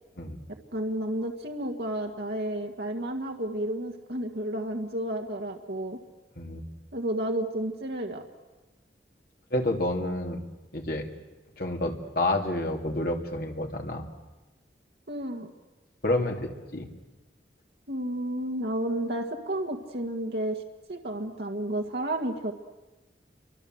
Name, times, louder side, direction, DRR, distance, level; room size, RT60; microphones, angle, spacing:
voice 1, 0.7-6.0 6.9-8.2 15.1-15.5 17.9-20.6 20.9-22.5, right 1 dB, 65° right, 1 dB, 1.8 m, -31 dB
voice 2, 9.5-10.4 10.7-11.1 11.6-14.1 16.0-16.9, left 1 dB, 55° left, 2 dB, 2.9 m, -29 dB
29.5 x 24.5 x 7.9 m, 1.2 s
head